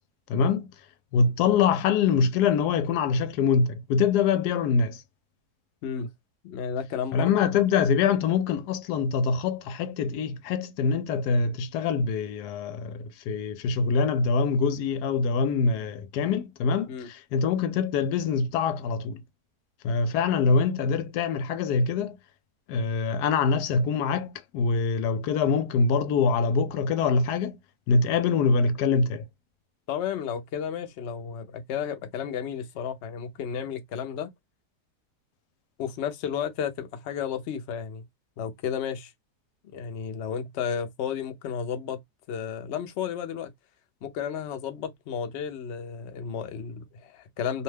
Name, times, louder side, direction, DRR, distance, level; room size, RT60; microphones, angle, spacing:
voice 1, 0.3-0.7 1.1-5.0 7.1-19.2 19.8-22.2 22.7-27.6 27.9-29.2, left 5 dB, 90° left, 1.1 m, -24 dB
voice 2, 6.4-7.3 16.9-17.1 29.9-34.3 35.8-38.0 38.4-39.1 39.7-42.0 42.3-43.5 44.0-47.6, left 7 dB, 60° left, 0.7 m, -32 dB
2.8 x 2.2 x 3.2 m
omnidirectional pair, 1.7 m